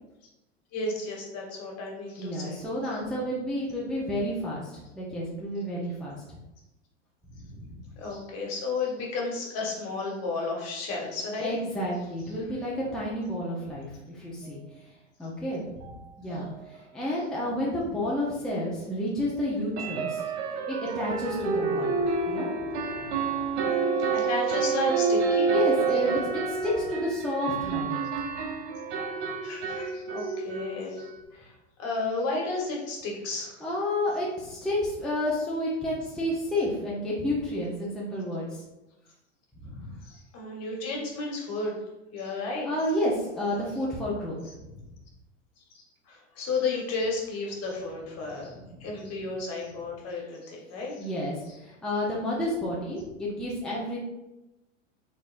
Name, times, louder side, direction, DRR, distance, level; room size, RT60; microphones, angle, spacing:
voice 1, 0.7-2.6 7.9-11.5 16.3-16.6 23.7-23.8 24.1-25.6 29.4-31.5 31.8-33.6 40.0-41.8 42.1-42.7 45.7-51.1 51.5-51.6, left 3 dB, 40° left, -1 dB, 1.5 m, -33 dB
voice 2, 2.2-6.2 7.4-7.8 11.4-14.6 15.2-15.8 16.2-20.2 20.7-22.0 22.3-22.5 23.0-23.2 25.5-26.2 26.5-28.1 33.6-38.6 39.6-39.9 42.6-44.4 44.7-44.8 48.5-48.9 51.0-51.3 51.6-54.0, left 1 dB, ahead, -6 dB, 0.8 m, -30 dB
sound 1, 15.8-15.9 16.3-16.4 16.7-16.8 19.8-31.2, right 5 dB, 60° right, 0.8 m, -28 dB
4.0 x 3.8 x 2.5 m, 0.97 s
hypercardioid pair, 100°, 38 cm